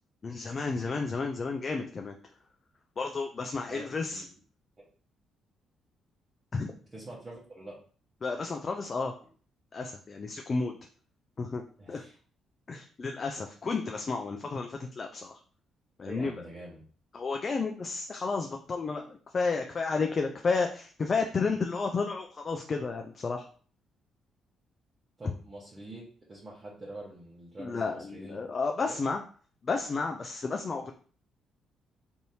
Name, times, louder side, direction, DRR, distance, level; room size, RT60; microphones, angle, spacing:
voice 1, 0.2-2.1 3.0-4.2 6.5-6.7 8.2-9.1 9.7-10.8 11.4-12.0 12.7-15.4 16.0-16.3 17.1-23.5 27.6-29.2 29.6-30.9, left 4 dB, 40° left, 3 dB, 0.4 m, -32 dB
voice 2, 3.7-4.3 6.6-7.8 11.8-12.2 16.0-16.8 25.2-26.0 26.3-28.4 28.8-29.0, right 1 dB, 30° right, -7 dB, 1.0 m, -45 dB
3.3 x 2.8 x 2.8 m, 0.42 s
cardioid pair, 90°, 0 cm